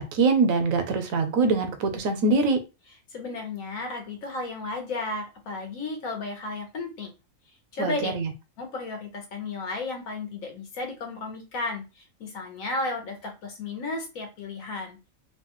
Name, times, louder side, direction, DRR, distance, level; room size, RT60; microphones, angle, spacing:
voice 1, 0.0-2.6 7.8-8.3, right 3 dB, 85° right, 8 dB, 1.1 m, -23 dB
voice 2, 3.1-7.1 7.7-8.1 8.6-15.0, left 3 dB, 85° left, 3 dB, 1.3 m, -33 dB
3.0 x 2.2 x 2.9 m, 0.28 s
omnidirectional pair, 1.4 m